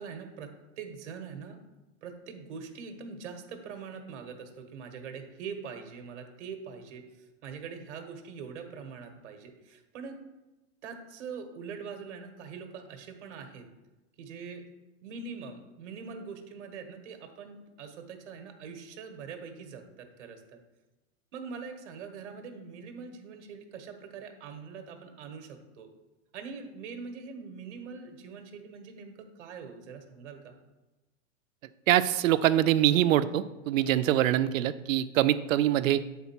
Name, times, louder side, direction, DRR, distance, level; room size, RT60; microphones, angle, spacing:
voice 1, 0.0-1.6 2.0-10.2 10.8-13.7 14.2-14.6 15.0-20.6 21.3-25.9 26.3-30.6, right 5 dB, 60° right, 6 dB, 1.1 m, -43 dB
voice 2, 31.9-36.0, right 12 dB, 90° right, 14 dB, 0.5 m, -24 dB
8.4 x 3.7 x 4.3 m, 1.1 s
supercardioid pair, 170°, 39 cm